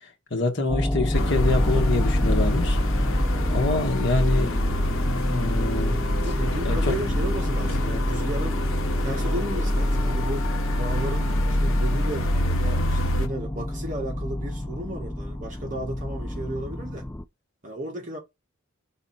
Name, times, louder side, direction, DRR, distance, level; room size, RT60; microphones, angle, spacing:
voice 1, 0.3-2.8 3.5-4.6 5.3-6.0 6.6-6.8, left 2 dB, 55° left, 1.5 m, -25 dB
sound 1, 0.7-17.2, left 1 dB, 10° left, 0.3 m, -30 dB
sound 2, 1.1-13.3, left 1 dB, 70° left, 0.9 m, -25 dB
voice 2, 6.1-8.6 9.0-17.1 17.6-18.2, right 1 dB, 35° right, 1.8 m, -34 dB
5.5 x 4.1 x 4.3 m
head